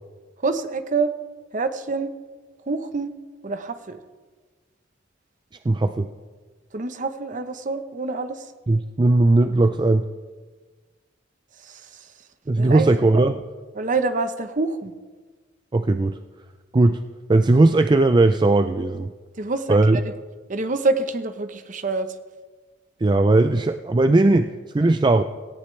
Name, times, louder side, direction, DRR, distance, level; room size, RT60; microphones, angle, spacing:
voice 1, 0.4-1.1 1.5-2.1 2.7-3.1 3.4-4.0 6.7-8.5 11.6-12.1 12.6-13.3 13.7-14.9 19.4-20.1 20.5-22.2, right 3 dB, 45° right, 9 dB, 0.9 m, -26 dB
voice 2, 5.6-6.1 8.7-10.0 12.5-13.4 15.7-16.2 16.7-17.0 17.3-19.1 19.7-20.0 23.0-24.5 24.7-25.2, right 2 dB, 25° right, 9 dB, 0.4 m, -18 dB
17.5 x 17.0 x 3.3 m, 1.4 s
head